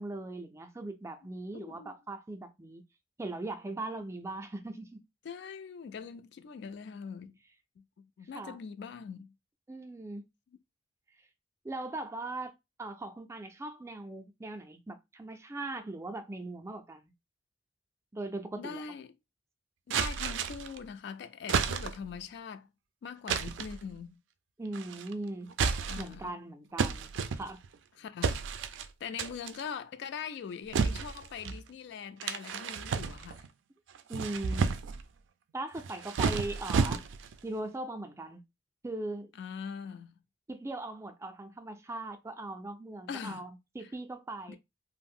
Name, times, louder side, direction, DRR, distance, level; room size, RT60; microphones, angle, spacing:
voice 1, 0.0-2.8 3.2-5.0 8.3-8.6 9.7-10.3 11.6-12.5 12.8-17.1 18.1-18.8 24.6-25.6 26.0-27.6 34.1-34.7 35.5-37.0 37.4-38.4 38.8-39.3 40.5-44.6, right 2 dB, 15° right, 0.3 m, -39 dB
voice 2, 1.5-1.9 5.2-7.4 7.8-9.3 18.6-19.1 19.9-22.7 23.0-24.2 25.9-26.3 28.0-28.6 29.0-33.5 39.3-40.1 43.1-43.5 44.5-44.6, left 6 dB, 65° left, 0.3 m, -42 dB
sound 1, 19.9-20.8 21.5-22.1 23.3-23.8 24.7-25.1 25.5-26.2 26.8-27.7 28.2-28.9 29.2-29.6 30.7-31.6 32.2-33.5 33.9-35.0 35.8-37.3, right 5 dB, 90° right, 0.3 m, -31 dB
2.4 x 2.0 x 3.5 m
head